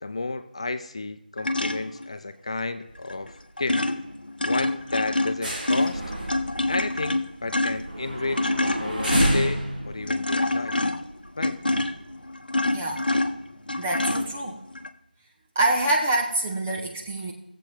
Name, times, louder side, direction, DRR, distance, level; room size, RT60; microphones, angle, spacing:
voice 1, 0.0-3.9 4.4-6.0 6.7-10.8 11.4-11.6, left 3 dB, 35° left, 10 dB, 0.6 m, -32 dB
sound 1, 1.4-2.1 3.1-3.3 3.6-14.9, left 2 dB, 65° left, 0.8 m, -27 dB
sound 2, 2.9-3.4 3.6-3.8 4.2-4.4 4.8-11.4 12.0-12.1, right 1 dB, 65° right, 2.3 m, -30 dB
voice 2, 13.8-14.6 15.6-17.3, right 2 dB, 10° right, -1 dB, 0.4 m, -25 dB
16.0 x 7.7 x 3.3 m, 0.84 s
figure-of-eight pair, 165°, 5 cm